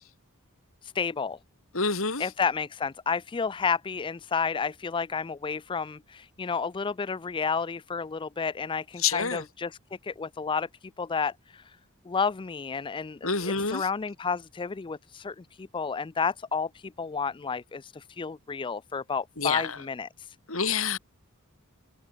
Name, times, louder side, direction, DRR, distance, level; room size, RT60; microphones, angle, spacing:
voice 1, 0.8-1.4 2.2-9.7 10.0-10.7 11.0-11.8 12.1-20.3, left 5 dB, 25° left, 0.4 m, -31 dB
voice 2, 1.7-2.3 9.0-9.4 13.2-13.9 19.4-19.8 20.5-21.0, left 5 dB, 70° left, 3.7 m, -27 dB
head